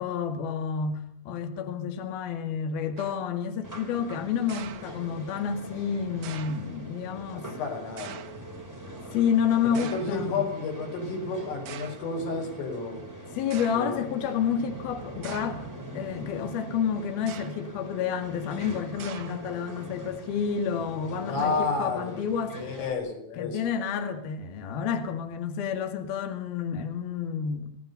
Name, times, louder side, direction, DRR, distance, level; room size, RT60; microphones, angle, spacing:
voice 1, 0.0-7.5 9.1-10.4 13.3-15.6 15.9-22.6 23.4-27.7, left 7 dB, 55° left, 6 dB, 3.8 m, -29 dB
sound 1, 3.0-3.4 4.5-5.4 6.2-6.8 8.0-8.5 9.7-10.3 11.1-11.2 11.7-12.1 13.0-13.1 13.5-14.0 15.2-15.8 17.2-17.8 19.0-19.6, right 10 dB, 65° right, 2.3 m, -44 dB
sound 2, 3.6-22.9, right 1 dB, 5° right, 3.6 m, -42 dB
voice 2, 7.3-8.2 9.7-13.0 13.8-14.1 21.3-22.2 22.6-23.6, left 4 dB, 90° left, 3 dB, 7.9 m, -31 dB
27.0 x 18.0 x 6.9 m, 0.65 s
omnidirectional pair, 5.6 m